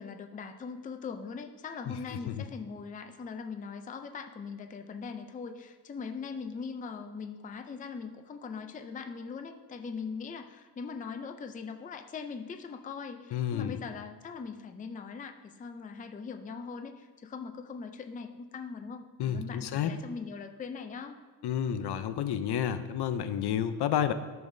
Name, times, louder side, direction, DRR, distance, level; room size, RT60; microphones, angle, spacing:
voice 1, 0.0-21.2, left 5 dB, 20° left, 6 dB, 0.4 m, -41 dB
voice 2, 1.9-2.4 13.3-13.8 19.2-19.9 21.4-24.1, left 9 dB, 70° left, 11 dB, 0.6 m, -30 dB
13.5 x 6.9 x 2.7 m, 1.3 s
wide cardioid pair, 165°, 41 cm